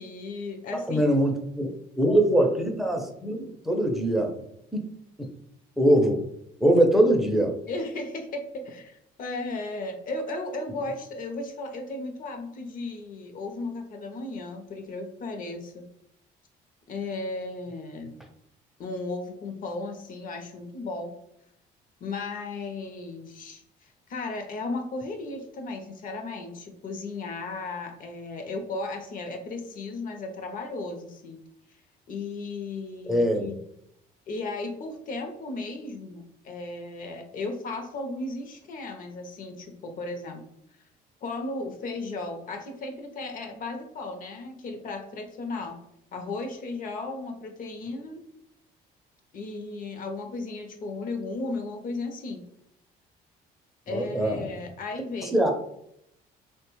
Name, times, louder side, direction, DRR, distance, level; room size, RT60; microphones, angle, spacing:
voice 1, 0.0-1.1 7.7-15.9 16.9-18.2 18.8-21.1 22.0-31.4 32.1-33.6 34.3-40.5 41.2-45.8 46.1-48.2 49.3-52.4 53.9-55.5, left 3 dB, 55° left, 5 dB, 0.6 m, -35 dB
voice 2, 0.9-1.7 2.0-4.4 4.7-4.9 5.2-5.3 5.8-6.2 6.6-7.5 33.1-33.5 53.9-54.5 55.3-55.5, right 1 dB, ahead, 2 dB, 0.5 m, -22 dB
3.2 x 2.2 x 3.0 m, 0.76 s
cardioid pair, 110°, 17 cm